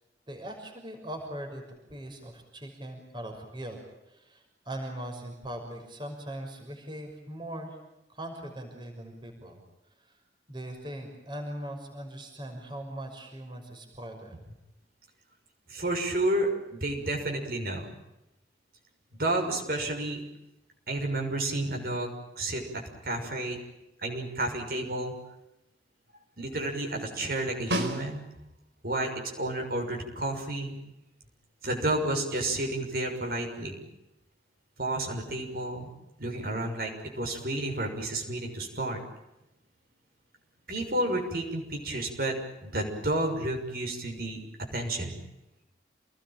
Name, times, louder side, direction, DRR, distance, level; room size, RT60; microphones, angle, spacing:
voice 1, 0.3-1.6 1.9-3.8 4.1-7.8 8.1-9.6 10.0-10.2 10.5-14.4, right 1 dB, 25° right, 3 dB, 6.1 m, -40 dB
voice 2, 15.7-16.5 16.8-17.9 19.2-20.2 20.9-22.1 22.4-22.6 23.0-23.6 24.0-25.1 26.4-28.2 28.8-29.1 29.4-30.8 31.6-33.7 34.8-35.9 36.2-39.0 40.7-42.3 42.6-44.4 44.7-45.2, right 1 dB, 50° right, 2 dB, 6.4 m, -31 dB
Snare drum, 27.7-28.6 33.1-33.2, equal, 70° right, 5.2 m, -32 dB
29.0 x 20.0 x 9.1 m, 0.91 s
head